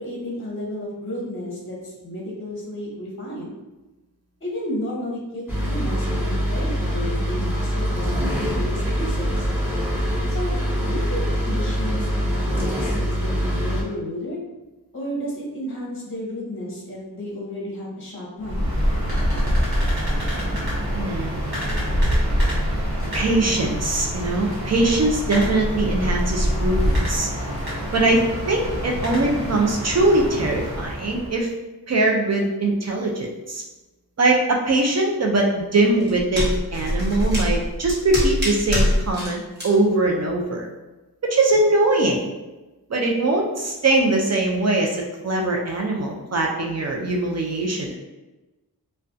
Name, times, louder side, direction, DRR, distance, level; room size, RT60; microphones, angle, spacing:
voice 1, 0.0-3.5 4.4-9.5 10.3-10.5 10.8-14.4 14.9-18.7, left 1 dB, 30° left, -3 dB, 0.8 m, -32 dB
sound 1, 5.5-13.8, equal, 5° right, 0.8 m, -24 dB
sound 2, 18.4-31.4, equal, 70° right, 1.1 m, -25 dB
voice 2, 20.9-21.3 23.1-27.3 27.9-31.5 31.9-33.6 34.2-40.7 41.2-42.3 42.9-48.0, right 2 dB, 45° right, 0 dB, 0.4 m, -21 dB
sound 3, 35.8-39.3 39.6-39.7, equal, 25° right, 1.1 m, -24 dB
2.3 x 2.2 x 2.5 m, 1.1 s
cardioid pair, 50°, 39 cm